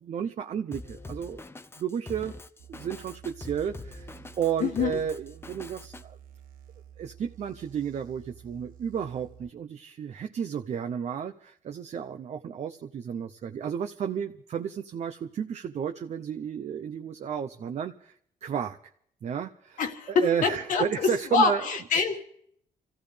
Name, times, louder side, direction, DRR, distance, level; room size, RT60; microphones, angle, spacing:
voice 1, 0.0-1.4 1.8-2.3 2.7-4.1 4.4-6.2 7.0-18.2 18.4-18.8 19.2-19.8 20.1-21.7, right 8 dB, 50° right, 6 dB, 0.7 m, -32 dB
Drum kit, 0.7-6.0, left 2 dB, 15° left, 0.7 m, -44 dB
sound 1, 2.6-9.5, right 9 dB, 75° right, 1.2 m, -51 dB
voice 2, 4.6-5.0 19.8-22.2, left 5 dB, 70° left, 4 dB, 1.9 m, -26 dB
27.0 x 15.0 x 3.4 m, 0.67 s
cardioid pair, 115°, 14 cm